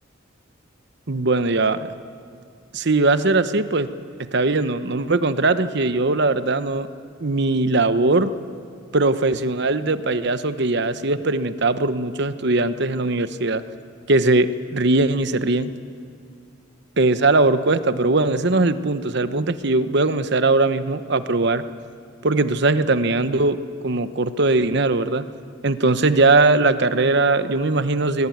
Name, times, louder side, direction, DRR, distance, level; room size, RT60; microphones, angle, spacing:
voice 1, 1.1-1.8 2.7-3.9 4.3-6.9 7.2-8.3 8.9-13.6 14.1-15.7 17.0-21.6 22.2-25.3 25.6-28.3, right 2 dB, 55° right, 11 dB, 1.0 m, -20 dB
22.0 x 21.0 x 9.4 m, 2.3 s
head